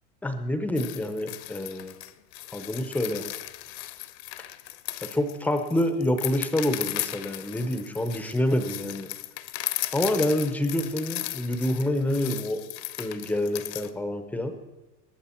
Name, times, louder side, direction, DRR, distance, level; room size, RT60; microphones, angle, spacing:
voice 1, 0.2-2.0 2.5-3.2 5.1-9.1 9.9-12.6 13.0-14.5, left 1 dB, 5° left, 8 dB, 0.5 m, -27 dB
sound 1, 0.8-13.9, left 17 dB, 40° left, 0.7 m, -36 dB
21.0 x 9.1 x 4.3 m, 1.2 s
supercardioid pair, 150°, 49 cm